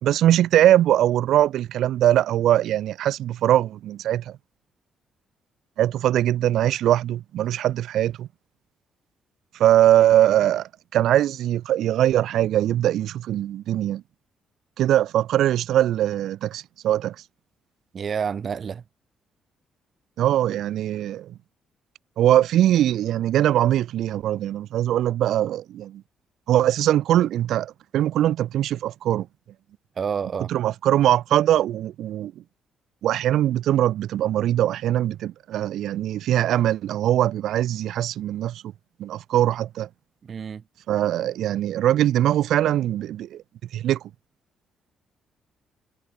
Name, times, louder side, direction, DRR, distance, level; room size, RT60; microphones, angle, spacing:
voice 1, 0.0-4.3 5.8-8.3 9.6-14.0 14.8-17.2 20.2-21.3 22.2-26.0 26.5-29.3 30.5-32.3 33.0-38.6 39.0-39.9 40.9-43.4 43.7-44.0, right 12 dB, 75° right, 0.5 m, -21 dB
voice 2, 17.9-18.8 30.0-30.5 40.2-40.6, right 6 dB, 50° right, 1.8 m, -29 dB
cardioid pair, 90°, 0 cm